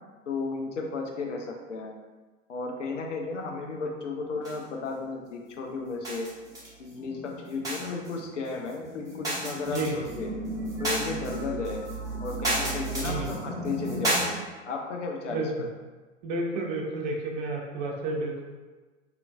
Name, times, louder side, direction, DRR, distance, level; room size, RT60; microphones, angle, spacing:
voice 1, 0.3-1.9 2.5-6.3 6.8-10.3 10.8-11.8 12.2-14.4 14.6-15.7, left 4 dB, 75° left, 1 dB, 0.6 m, -34 dB
sound 1, 4.4-5.2 5.5-6.7 6.9-14.3, right 1 dB, 10° right, 0.8 m, -33 dB
voice 2, 16.2-18.4, right 2 dB, 40° right, 0 dB, 0.6 m, -31 dB
2.9 x 2.4 x 2.3 m, 1.3 s
figure-of-eight pair, 90°, 37 cm